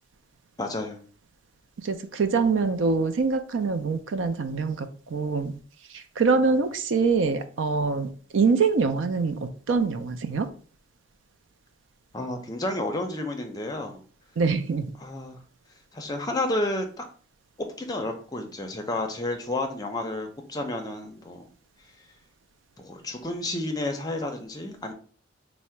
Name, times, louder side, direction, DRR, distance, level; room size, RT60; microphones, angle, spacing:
voice 1, 0.6-1.0 12.1-14.0 15.0-15.4 15.9-17.0 17.8-21.5 22.8-24.9, left 2 dB, 20° left, 4 dB, 0.5 m, -31 dB
voice 2, 1.8-5.6 5.9-10.5 14.4-14.9, right 4 dB, 75° right, 9 dB, 0.4 m, -24 dB
3.6 x 2.1 x 4.3 m, 0.42 s
head